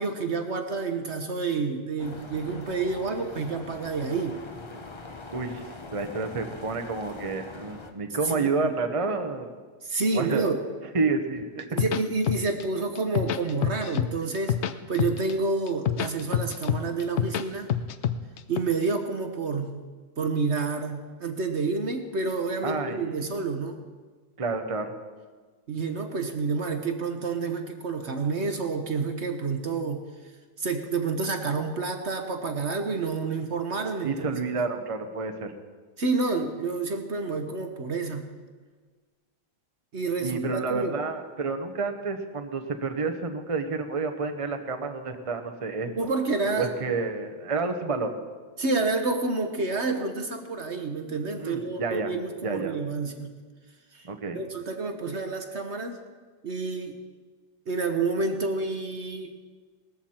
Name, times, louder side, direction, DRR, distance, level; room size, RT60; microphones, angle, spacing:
voice 1, 0.0-4.4 8.2-8.7 9.8-10.6 11.7-14.6 14.9-17.7 18.5-19.8 20.2-23.8 25.7-30.0 30.6-34.4 36.0-38.3 39.9-40.9 45.9-47.0 48.6-53.3 53.9-54.1 54.3-56.0 56.4-57.0 57.7-59.3, right 3 dB, 45° right, 6 dB, 1.1 m, -29 dB
sound 1, 2.0-7.9, left 3 dB, 30° left, 0.5 m, -42 dB
voice 2, 5.3-5.6 5.9-9.5 10.1-10.5 10.9-11.8 22.6-23.4 24.4-24.9 34.0-35.5 40.2-45.9 46.6-48.1 51.4-52.1 52.4-52.7 54.0-54.4, right 4 dB, 30° right, 6 dB, 0.7 m, -29 dB
sound 2, 11.6-12.6 12.9-14.1 14.3-15.3 15.7-17.4 17.7-18.6, left 10 dB, 85° left, 0.6 m, -26 dB
19.0 x 14.0 x 4.4 m, 1.4 s
omnidirectional pair, 2.0 m